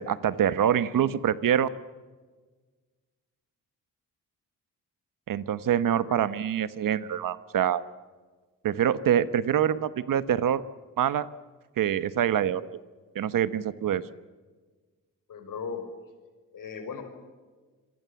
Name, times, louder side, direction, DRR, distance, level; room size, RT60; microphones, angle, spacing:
voice 1, 0.0-1.7 5.3-7.8 8.6-10.6 11.0-11.3 11.8-12.7 13.1-14.1, right 9 dB, 70° right, 14 dB, 1.2 m, -25 dB
voice 2, 15.3-15.8 16.5-17.0, left 6 dB, 70° left, 6 dB, 5.4 m, -37 dB
27.0 x 24.0 x 7.2 m, 1.4 s
cardioid pair, 115°, 34 cm